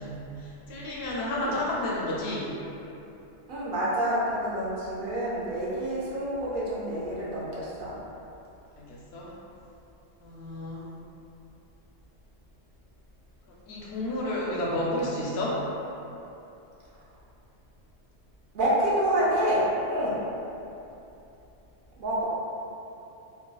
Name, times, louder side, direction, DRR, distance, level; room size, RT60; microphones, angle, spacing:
voice 1, 0.0-2.5 8.8-9.3 10.2-10.8 13.5-15.6, left 1 dB, 65° left, -5 dB, 0.7 m, -31 dB
voice 2, 3.5-8.0 16.9-17.1 18.5-20.2 22.0-22.3, right 1 dB, 65° right, -7 dB, 0.5 m, -28 dB
3.3 x 2.1 x 2.3 m, 2.9 s
omnidirectional pair, 1.3 m